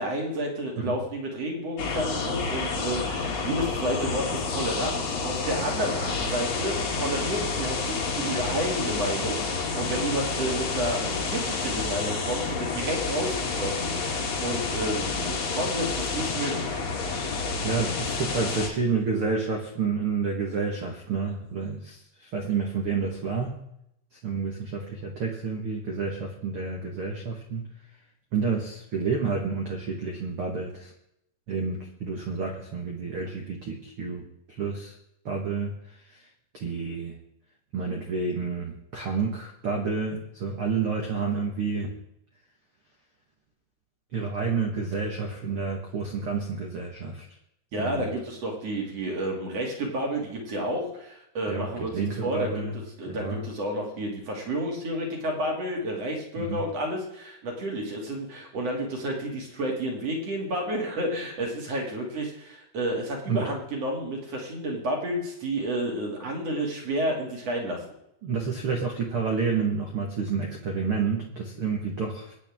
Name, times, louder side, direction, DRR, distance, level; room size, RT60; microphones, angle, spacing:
voice 1, 0.0-16.8 47.7-52.6 53.0-67.9, right 1 dB, 40° right, 0 dB, 3.3 m, -31 dB
sound 1, 1.8-18.7, left 4 dB, 50° left, 2.4 m, -29 dB
voice 2, 17.6-23.6 24.2-27.7 28.3-30.9 31.5-34.9 35.2-36.2 36.5-37.1 37.7-41.9 44.1-47.2 47.7-48.1 51.5-52.8 53.1-53.4 56.4-56.6 63.3-63.4 68.2-72.3, right 5 dB, 65° right, 1 dB, 1.3 m, -29 dB
24.0 x 9.3 x 3.7 m, 0.79 s
omnidirectional pair, 4.9 m